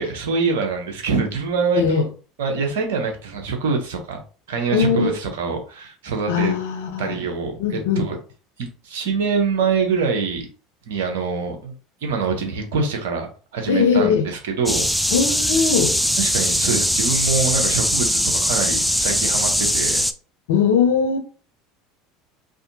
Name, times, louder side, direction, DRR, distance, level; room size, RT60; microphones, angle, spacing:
voice 1, 0.0-2.0 2.4-4.2 4.5-6.5 7.0-8.2 8.6-10.5 10.9-11.7 12.0-14.9 16.2-20.0, right 4 dB, 75° right, 0.8 m, -24 dB
voice 2, 1.8-2.1 4.7-5.1 6.3-7.2 7.6-8.1 13.7-14.3 15.1-15.9 20.5-21.2, left 6 dB, 75° left, 0.5 m, -20 dB
sound 1, 14.7-20.1, equal, ahead, 0.3 m, -21 dB
2.6 x 2.5 x 2.7 m
hypercardioid pair, 75°, 0 cm